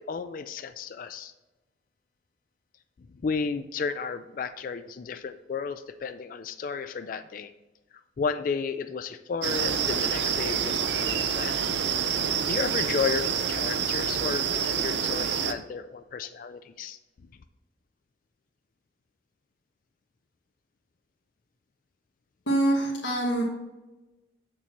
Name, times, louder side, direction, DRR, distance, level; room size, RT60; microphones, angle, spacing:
voice 1, 0.0-1.3 3.2-7.5 8.2-11.6 12.1-12.2 12.5-17.0, left 5 dB, 45° left, 11 dB, 0.3 m, -33 dB
sound 1, 9.4-15.5, right 7 dB, 65° right, 0.5 m, -27 dB
voice 2, 22.5-23.4, right 1 dB, 75° left, -5 dB, 1.4 m, -25 dB
7.2 x 6.8 x 3.0 m, 1.1 s
head